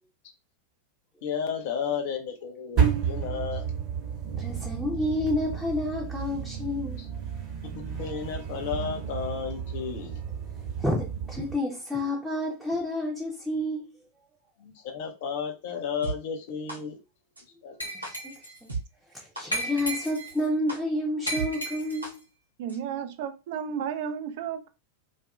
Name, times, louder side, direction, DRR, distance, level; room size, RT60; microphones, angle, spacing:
voice 1, 1.2-3.6 7.6-10.2 14.6-17.0 17.6-18.0, left 6 dB, 50° left, 0.5 m, -33 dB
sound 1, 2.8-11.6, right 7 dB, 35° right, 0.9 m, -31 dB
voice 2, 4.4-7.0 10.8-13.9 18.0-18.3 19.1-22.2, left 1 dB, ahead, 0.6 m, -29 dB
sound 2, 16.0-16.1 16.7-16.8 17.4-17.5 18.0-18.1 18.7-18.8 19.4-19.5 20.0-20.1 20.7-20.8 21.4-21.5 22.0-22.1 22.7-22.8, right 3 dB, 80° right, 0.7 m, -33 dB
Glass, 17.8-18.6 19.5-20.4 21.3-22.1, equal, 85° left, 0.8 m, -34 dB
voice 3, 22.6-24.7, right 8 dB, 50° right, 0.4 m, -33 dB
2.7 x 2.4 x 2.2 m
figure-of-eight pair, 90°, 0 cm